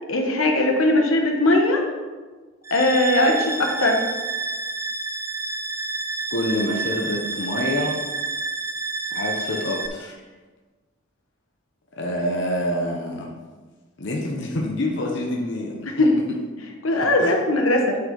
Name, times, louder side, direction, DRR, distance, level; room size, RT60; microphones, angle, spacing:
voice 1, 0.1-1.8 2.7-4.0 16.0-16.1 16.8-18.0, left 1 dB, 85° left, 2 dB, 1.1 m, -19 dB
sound 1, 2.6-9.9, right 4 dB, 15° right, 0.4 m, -29 dB
voice 2, 6.3-8.0 9.1-10.1 12.0-13.3 14.0-16.1 17.0-17.3, left 1 dB, 60° left, 0 dB, 0.9 m, -27 dB
7.9 x 5.6 x 3.9 m, 1.3 s
head